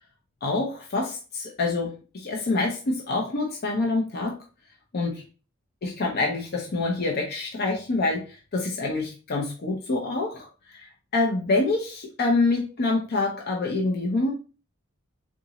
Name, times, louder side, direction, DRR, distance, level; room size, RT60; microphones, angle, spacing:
voice 1, 0.4-4.3 4.9-5.2 5.8-10.9 11.1-14.3, left 3 dB, 50° left, 0 dB, 0.6 m, -26 dB
3.7 x 2.6 x 2.9 m, 0.34 s
head